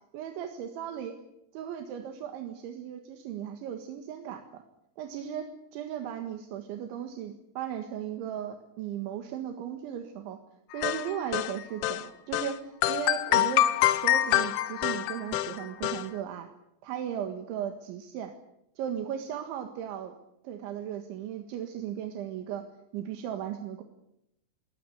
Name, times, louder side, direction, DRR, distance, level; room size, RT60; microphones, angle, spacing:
voice 1, 0.1-1.1 1.5-4.6 5.0-5.5 5.7-10.4 10.7-16.5 16.8-18.3 18.8-20.2 20.4-22.6 22.9-23.8, right 9 dB, 80° right, 6 dB, 4.1 m, -36 dB
sound 1, 10.8-12.0 12.3-12.5 12.8-16.0, left 13 dB, 85° left, 3.5 m, -26 dB
21.5 x 19.0 x 9.5 m, 0.82 s
omnidirectional pair, 5.3 m